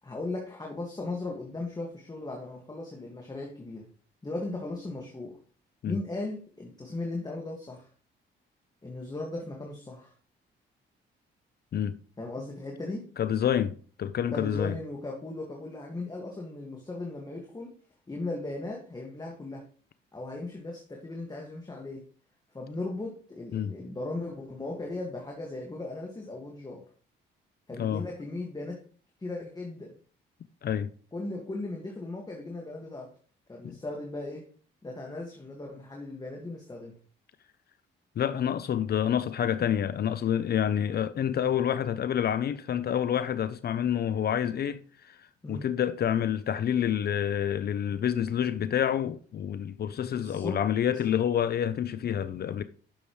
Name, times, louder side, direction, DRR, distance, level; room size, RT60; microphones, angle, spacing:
voice 1, 0.0-3.9 4.2-5.4 5.9-7.9 8.8-10.1 12.2-13.1 14.3-17.7 18.1-19.7 20.1-22.0 22.5-26.9 27.7-28.8 29.2-29.9 31.1-33.1 33.5-34.5 34.8-37.0 45.4-45.6 50.1-50.6, left 2 dB, 20° left, 2.0 m, -37 dB
voice 2, 13.2-14.7 23.5-23.7 27.8-28.0 30.6-30.9 33.6-33.8 38.2-45.2 45.5-52.6, left 9 dB, 55° left, 0.6 m, -28 dB
10.5 x 7.0 x 3.2 m
cardioid pair, 90°, 20 cm